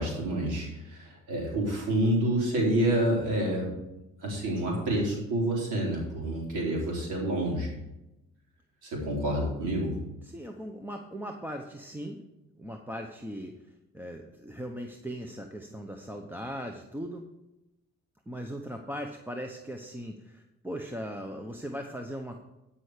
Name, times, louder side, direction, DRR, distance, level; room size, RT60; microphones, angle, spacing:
voice 1, 0.0-3.7 4.2-7.7 8.8-10.0, right 1 dB, 85° right, -2 dB, 4.1 m, -28 dB
voice 2, 10.2-12.2 12.6-13.5 13.9-17.3 18.3-22.4, equal, 5° right, 2 dB, 0.8 m, -39 dB
12.5 x 5.7 x 5.0 m, 0.95 s
cardioid pair, 90°, 30 cm